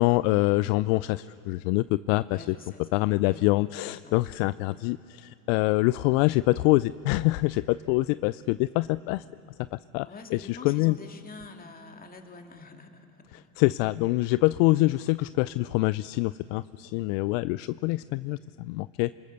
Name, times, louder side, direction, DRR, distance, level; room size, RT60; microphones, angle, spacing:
voice 1, 0.0-2.4 2.9-9.2 9.7-11.0 13.6-19.1, left 20 dB, 60° left, 17 dB, 0.5 m, -25 dB
voice 2, 2.2-3.5 4.0-4.2 10.0-13.5, left 3 dB, 20° left, 4 dB, 2.4 m, -46 dB
27.0 x 21.0 x 6.7 m, 2.6 s
hypercardioid pair, 95°, 43 cm